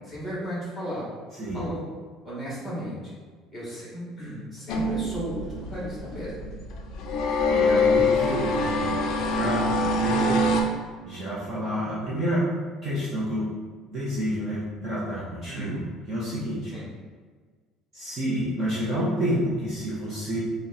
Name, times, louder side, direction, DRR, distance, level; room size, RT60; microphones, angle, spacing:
voice 1, 0.1-1.0 1.5-1.8 2.2-3.0 3.5-6.5 15.5-15.8 16.7-16.8, equal, 5° left, -7 dB, 1.3 m, -35 dB
sound 1, 4.7-10.6, left 2 dB, 45° left, 0.4 m, -24 dB
voice 2, 7.5-9.0 9.3-10.5 11.0-12.5 12.8-13.4 13.9-15.8 16.1-16.7 17.9-20.4, equal, 20° right, -9 dB, 0.7 m, -29 dB
4.3 x 2.1 x 3.9 m, 1.5 s
cardioid pair, 180°, 0 cm